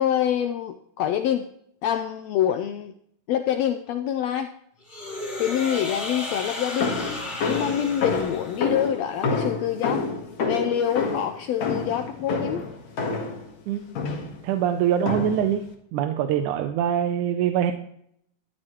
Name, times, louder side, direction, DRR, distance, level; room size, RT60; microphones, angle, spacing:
voice 1, 0.0-1.5 1.8-2.9 3.3-4.5 5.4-6.9 7.5-10.0 10.4-12.7, left 10 dB, 80° left, 8 dB, 1.6 m, -26 dB
sound 1, 4.9-8.9, left 2 dB, 20° left, 2.8 m, -34 dB
sound 2, 6.8-13.5 14.0-14.4 15.1-15.5, left 4 dB, 60° left, 3.0 m, -28 dB
voice 2, 14.4-15.6 15.9-17.7, right 9 dB, 80° right, 7 dB, 2.1 m, -23 dB
14.0 x 12.0 x 3.1 m, 0.70 s
omnidirectional pair, 3.7 m